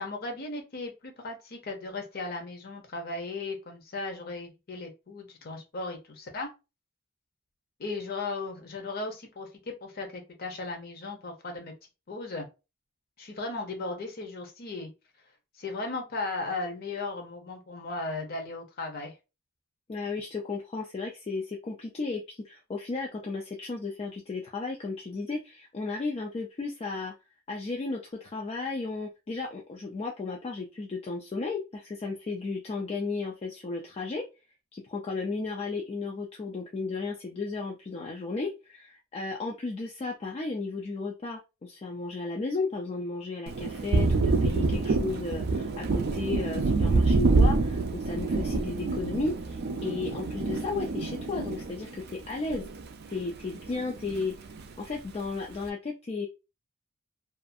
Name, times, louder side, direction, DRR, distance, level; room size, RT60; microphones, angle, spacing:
voice 1, 0.0-6.5 7.8-11.7 12.1-12.5 13.2-14.9 15.6-19.1, left 3 dB, 45° left, 3 dB, 0.7 m, -36 dB
voice 2, 19.9-27.1 27.5-34.3 34.7-52.6 53.1-54.4 54.8-56.3, left 3 dB, 30° left, 0 dB, 0.3 m, -34 dB
Thunder, 43.5-53.2 53.5-54.7, right 3 dB, 50° right, 0.4 m, -27 dB
2.5 x 2.4 x 2.5 m, 0.28 s
head